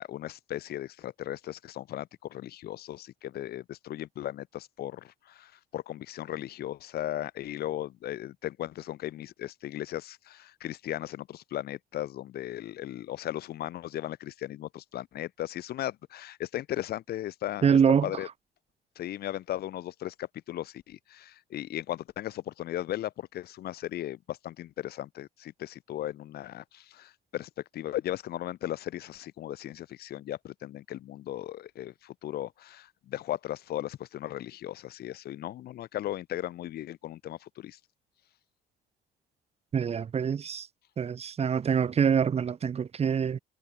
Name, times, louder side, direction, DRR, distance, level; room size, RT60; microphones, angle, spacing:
voice 1, 0.0-18.3 19.0-37.8, left 13 dB, 65° left, 4.0 m, -37 dB
voice 2, 17.6-18.1 39.7-40.7 41.0-43.4, right 7 dB, 40° right, 2.2 m, -25 dB
cardioid pair, 110°, 17 cm